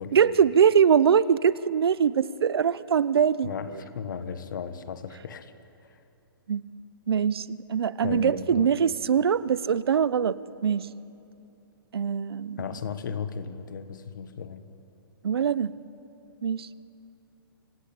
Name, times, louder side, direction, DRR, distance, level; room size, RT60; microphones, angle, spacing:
voice 1, 0.1-3.5 6.5-6.6 7.1-10.9 11.9-12.6 15.2-15.8 16.4-16.7, right 7 dB, 85° right, 18 dB, 0.8 m, -23 dB
voice 2, 3.4-5.5 8.0-8.8 12.6-14.6, left 7 dB, 55° left, 11 dB, 1.5 m, -35 dB
25.5 x 18.0 x 8.7 m, 2.8 s
hypercardioid pair, 175°, 12 cm